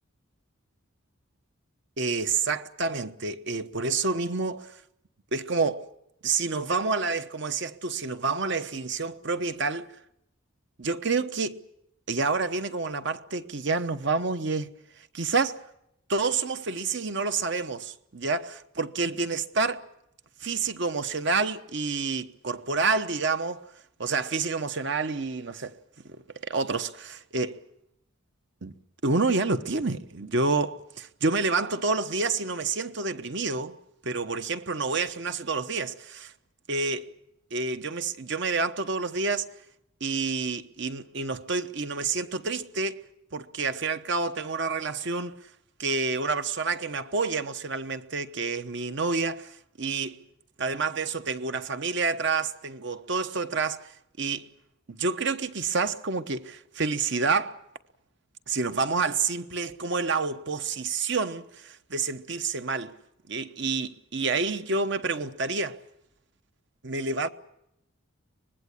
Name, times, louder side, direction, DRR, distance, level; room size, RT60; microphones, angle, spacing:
voice 1, 2.0-4.8 5.3-5.9 6.2-9.9 10.8-11.6 12.1-14.7 15.0-15.6 16.1-19.9 20.4-23.6 24.0-25.8 26.4-27.6 28.6-28.7 29.0-33.8 34.0-36.3 36.7-37.1 37.5-39.5 40.0-43.0 43.3-45.3 45.8-50.2 50.6-54.5 54.9-57.6 58.5-62.9 63.3-65.8 66.8-67.3, right 4 dB, 55° right, 1.0 m, -28 dB
24.5 x 20.5 x 8.3 m
head